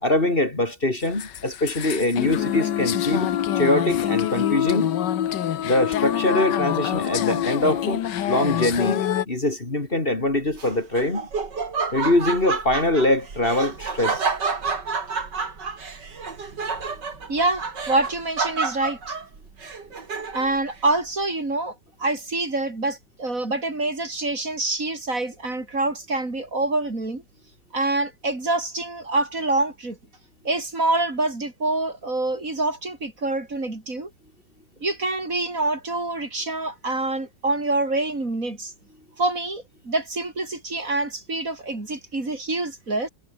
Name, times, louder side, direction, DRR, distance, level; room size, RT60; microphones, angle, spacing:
voice 1, 0.0-3.3 3.5-5.0 5.6-11.2 11.9-14.3, left 1 dB, 30° left, 3.2 m, -23 dB
sound 1, 1.0-9.2, left 10 dB, 75° left, 1.7 m, -25 dB
Laughter, 10.5-20.6, right 5 dB, 70° right, 3.5 m, -29 dB
voice 2, 17.3-19.2 20.3-27.2 27.7-30.0 30.4-34.1 34.8-38.7 39.2-43.1, right 2 dB, 45° right, 4.8 m, -26 dB
omnidirectional pair, 1.9 m